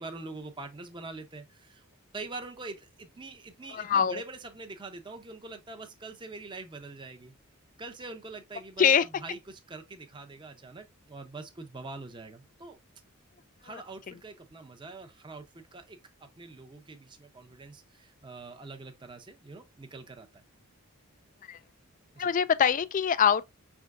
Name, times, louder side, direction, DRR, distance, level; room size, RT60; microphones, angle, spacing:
voice 1, 0.0-1.8 2.1-7.3 7.8-12.8 13.6-20.4 22.1-22.3, right 3 dB, 20° right, 0.6 m, -44 dB
voice 2, 3.7-4.2 8.8-9.0 21.5-21.6 22.2-23.5, left 7 dB, 35° left, 0.3 m, -23 dB
5.5 x 3.5 x 2.4 m
head